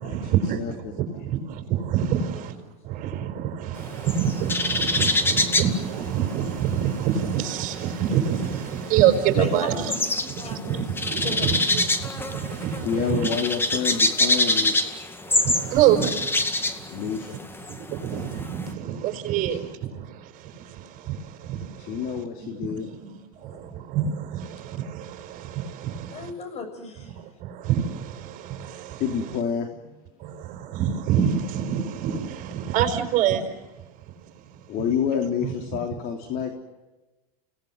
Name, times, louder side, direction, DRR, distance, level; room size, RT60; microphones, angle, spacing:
voice 1, 0.0-0.6 1.0-1.4 1.7-2.5 2.9-10.0 10.5-11.9 12.3-13.3 15.3-16.1 17.9-19.9 21.1-21.2 21.4-21.6 22.7-23.1 23.9-26.3 27.6-29.2 30.2-33.4 35.4-35.5, right 9 dB, 45° right, 6 dB, 5.3 m, -26 dB
sound 1, 3.8-6.9 7.1-18.7, left 2 dB, 10° left, 2.2 m, -25 dB
voice 2, 9.4-10.8 11.2-11.5 19.5-19.6 23.4-23.6 26.1-27.2, left 4 dB, 35° left, 8 dB, 7.0 m, -36 dB
voice 3, 12.8-14.7 16.9-17.3 21.8-22.9 23.5-23.7 29.0-29.9 34.7-36.5, left 7 dB, 50° left, 4 dB, 3.3 m, -28 dB
29.5 x 18.5 x 8.0 m, 1.1 s
supercardioid pair, 120°, 19 cm